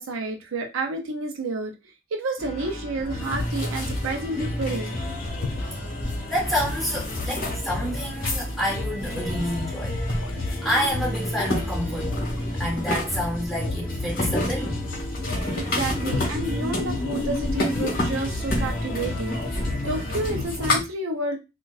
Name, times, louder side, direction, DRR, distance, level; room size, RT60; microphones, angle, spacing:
voice 1, 0.0-1.7 2.1-5.0 15.6-21.4, right 2 dB, 75° right, 0.6 m, -30 dB
sound 1, 2.4-20.4, left 1 dB, 20° left, 1.0 m, -38 dB
sound 2, 3.1-20.8, left 1 dB, 45° left, 1.2 m, -29 dB
sound 3, 4.1-4.2 4.6-4.9 5.4-5.8 7.0-7.5 7.8-8.0 8.3-8.4 8.9-9.7 10.2-10.5 11.2-11.4 11.8-12.4 13.5-14.6 16.1-16.5 17.1-18.0, left 4 dB, 80° left, 0.4 m, -35 dB
voice 2, 6.3-9.9 10.3-12.3 12.6-14.7, equal, ahead, 1.4 m, -28 dB
4.0 x 2.4 x 2.4 m
head